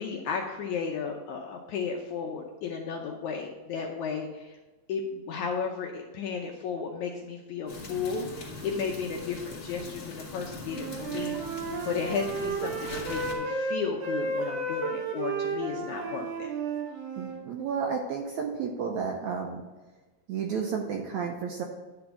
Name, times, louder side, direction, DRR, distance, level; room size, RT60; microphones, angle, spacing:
voice 1, 0.0-4.6 4.9-16.5, left 6 dB, 75° left, 1 dB, 1.8 m, -34 dB
sound 1, 7.7-13.3, left 3 dB, 40° left, 2.7 m, -41 dB
Wind instrument woodwind instrument, 10.6-17.4, right 3 dB, 90° right, 3.6 m, -33 dB
voice 2, 17.2-19.6 20.3-21.6, right 6 dB, 75° right, 1 dB, 1.8 m, -32 dB
10.5 x 3.8 x 6.9 m, 1.2 s
omnidirectional pair, 4.1 m